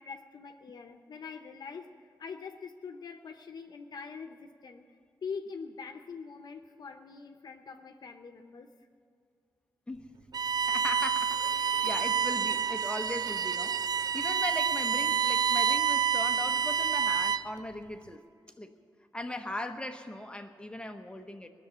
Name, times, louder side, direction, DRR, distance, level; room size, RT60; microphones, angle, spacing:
voice 1, 0.0-8.7 11.8-11.9, left 5 dB, 60° left, 5 dB, 0.8 m, -44 dB
Bowed string instrument, 10.3-17.6, right 7 dB, 55° right, 0.4 m, -28 dB
voice 2, 10.7-18.2 18.6-18.7 19.1-21.5, left 1 dB, 10° left, 5 dB, 0.9 m, -39 dB
18.5 x 7.0 x 9.9 m, 2.3 s
cardioid pair, 90°, 8 cm